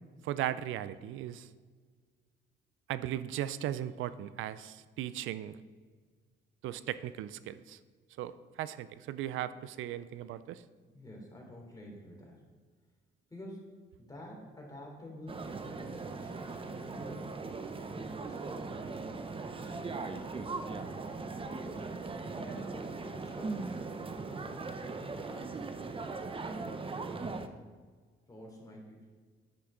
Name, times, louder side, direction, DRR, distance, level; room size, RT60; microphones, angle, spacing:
voice 1, 0.2-1.5 2.9-5.6 6.6-7.8 8.2-10.6, right 12 dB, 85° right, 15 dB, 0.4 m, -37 dB
voice 2, 10.9-12.4 13.3-17.3 17.8-18.9 19.6-20.6 21.6-22.0 22.3-23.8 24.3-25.8 26.2-27.2 28.3-29.1, equal, 20° left, -1 dB, 3.3 m, -49 dB
sound 1, 15.3-27.5, right 3 dB, 25° right, 0.7 m, -39 dB
10.0 x 8.7 x 3.8 m, 1.5 s
cardioid pair, 90°, 20 cm